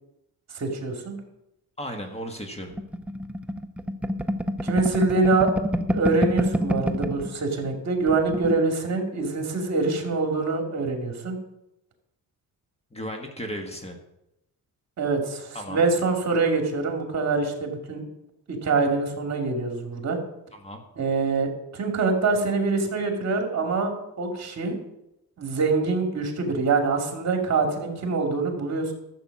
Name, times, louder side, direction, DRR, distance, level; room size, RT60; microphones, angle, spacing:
voice 1, 0.5-1.2 4.6-5.5 5.9-11.4 15.0-18.0 18.5-20.2 21.0-21.5 21.7-23.9 24.2-24.7 25.4-28.9, right 3 dB, 45° right, 2 dB, 2.7 m, -25 dB
voice 2, 1.8-2.7 12.9-14.0 15.5-15.8 20.5-20.8, equal, 15° left, 3 dB, 1.5 m, -35 dB
sound 1, 2.8-7.3 7.6-7.8 8.0-8.6, equal, 5° right, 0.7 m, -27 dB
13.0 x 8.0 x 6.0 m, 0.88 s
cardioid pair, 125°, 36 cm